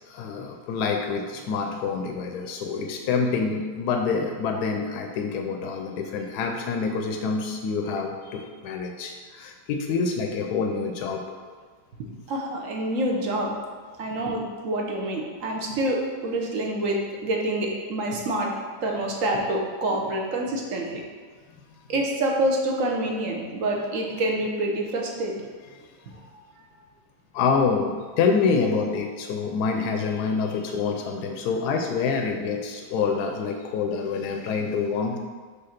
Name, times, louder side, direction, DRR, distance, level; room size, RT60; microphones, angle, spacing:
voice 1, 0.1-11.2 27.3-35.2, left 5 dB, 80° left, 3 dB, 1.1 m, -26 dB
voice 2, 12.0-13.5 14.0-18.5 18.8-21.0 21.9-25.4 26.1-26.2, right 1 dB, 55° right, 0 dB, 1.2 m, -27 dB
5.7 x 3.3 x 5.8 m, 1.5 s
omnidirectional pair, 1.7 m